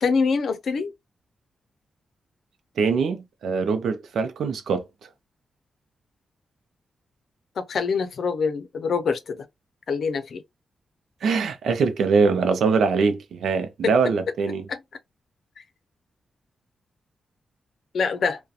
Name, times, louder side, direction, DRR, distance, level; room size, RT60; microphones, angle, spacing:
voice 1, 0.0-0.9 7.6-9.4 9.9-10.4 13.8-13.9 14.7-14.8 15.6-15.7 17.9-18.4, left 5 dB, 65° left, 0.5 m, -25 dB
voice 2, 2.8-4.9 11.2-14.6, right 5 dB, 85° right, 0.5 m, -23 dB
2.4 x 2.1 x 2.6 m
wide cardioid pair, 110°, 0 cm